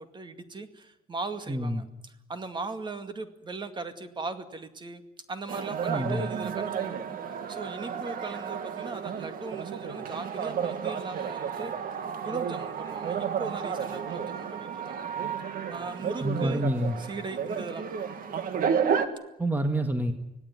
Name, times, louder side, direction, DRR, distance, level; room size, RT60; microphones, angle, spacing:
voice 1, 0.0-5.0 5.3-11.7 12.2-15.1 15.7-16.7 17.0-18.2, right 3 dB, 25° right, 8 dB, 2.1 m, -39 dB
voice 2, 1.5-1.8 5.9-6.3 16.2-17.0 19.4-20.1, right 1 dB, 10° right, 6 dB, 1.7 m, -27 dB
sound 1, 5.5-19.1, right 7 dB, 55° right, 2.0 m, -32 dB
25.0 x 17.5 x 9.6 m, 0.89 s
cardioid pair, 110°, 17 cm